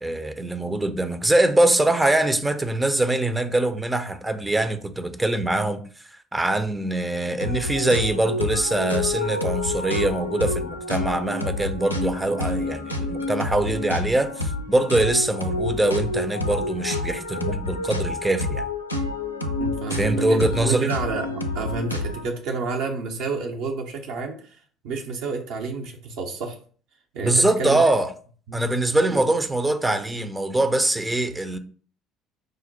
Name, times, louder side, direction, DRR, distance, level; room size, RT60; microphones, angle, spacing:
voice 1, 0.0-5.8 6.1-18.7 19.9-20.9 27.2-28.1 28.5-31.6, right 2 dB, 10° right, 0.5 m, -23 dB
sound 1, 7.4-22.3, left 2 dB, 85° left, 0.4 m, -28 dB
voice 2, 19.6-24.6 24.8-26.6 27.1-27.8 28.5-28.6 29.1-29.2, right 4 dB, 60° right, 0.7 m, -29 dB
5.0 x 2.1 x 4.2 m
figure-of-eight pair, 55°, 0 cm